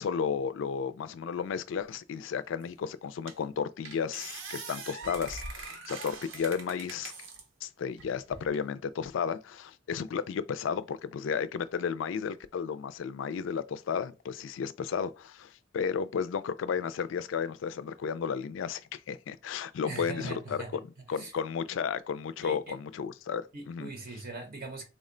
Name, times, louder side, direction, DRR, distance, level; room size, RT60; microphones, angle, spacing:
voice 1, 0.0-7.3 7.6-20.6 21.1-23.9, left 6 dB, 75° left, 0.3 m, -33 dB
sound 1, 2.6-2.7 3.3-3.5 3.8-7.4 8.0-8.6, right 4 dB, 85° right, 0.7 m, -43 dB
voice 2, 19.8-20.7 21.1-21.3 22.4-22.6 23.5-24.8, right 2 dB, 50° right, 0.6 m, -40 dB
3.5 x 2.1 x 3.7 m
head